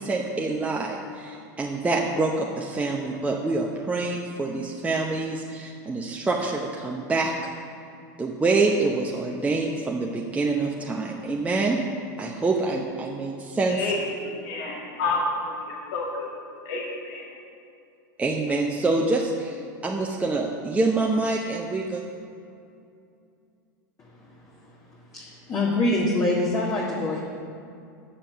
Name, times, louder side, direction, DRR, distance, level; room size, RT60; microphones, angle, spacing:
voice 1, 0.0-7.3 8.2-11.8 12.2-13.9 18.2-22.0, right 3 dB, 15° right, -1 dB, 0.7 m, -26 dB
voice 2, 13.7-16.3 16.7-17.2, left 2 dB, 65° left, -3 dB, 1.9 m, -29 dB
voice 3, 24.7-27.2, left 2 dB, 30° left, -4 dB, 1.6 m, -26 dB
7.2 x 7.0 x 6.8 m, 2.5 s
hypercardioid pair, 100°, 10 cm